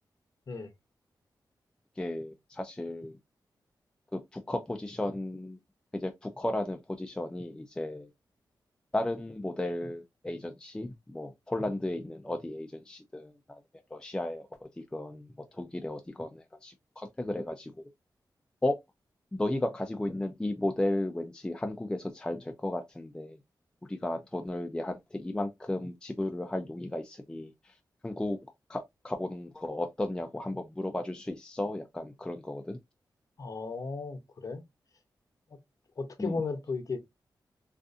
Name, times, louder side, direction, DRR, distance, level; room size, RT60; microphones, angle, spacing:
voice 1, 2.0-3.2 4.1-5.6 5.9-8.1 8.9-13.6 13.9-17.7 18.6-18.8 19.3-23.4 23.9-27.5 28.0-28.4 28.7-32.8 36.2-36.4, left 1 dB, 10° left, 0.3 m, -34 dB
voice 2, 33.4-34.6 36.0-37.0, left 4 dB, 50° left, 0.7 m, -35 dB
2.5 x 2.4 x 2.4 m
wide cardioid pair, 105°, 8 cm